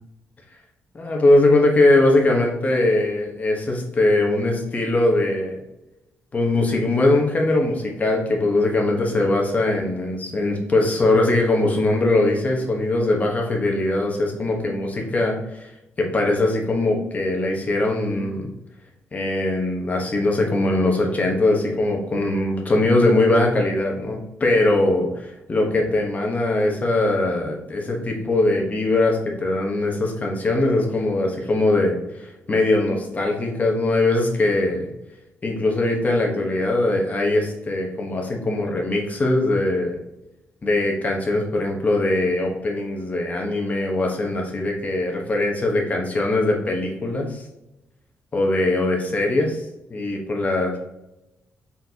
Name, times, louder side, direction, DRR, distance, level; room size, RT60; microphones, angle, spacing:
voice 1, 0.9-5.6 6.3-15.7 16.0-18.5 19.1-34.9 35.4-40.0 40.6-47.4 48.3-49.6 49.9-50.8, left 2 dB, 30° left, 0 dB, 1.1 m, -21 dB
4.3 x 4.0 x 2.8 m, 0.93 s
cardioid pair, 120°, 5 cm